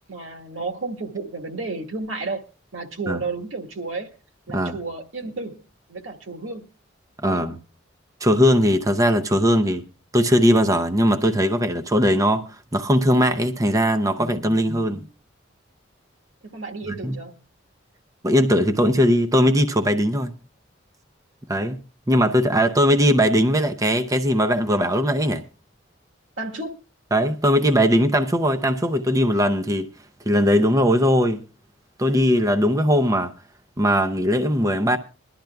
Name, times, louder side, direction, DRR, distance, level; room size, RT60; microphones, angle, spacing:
voice 1, 0.1-2.4 2.7-4.2 4.5-5.6 5.9-6.6 7.2-7.5 16.4-17.3 26.4-26.8, right 3 dB, 85° right, 1.5 m, -32 dB
voice 2, 7.2-7.6 8.2-9.8 10.1-15.1 17.0-17.2 18.2-20.3 21.5-21.8 22.1-25.4 27.1-29.9 30.3-31.4 32.0-33.3 33.8-35.0, equal, 15° right, 0.6 m, -19 dB
22.0 x 11.5 x 2.3 m
head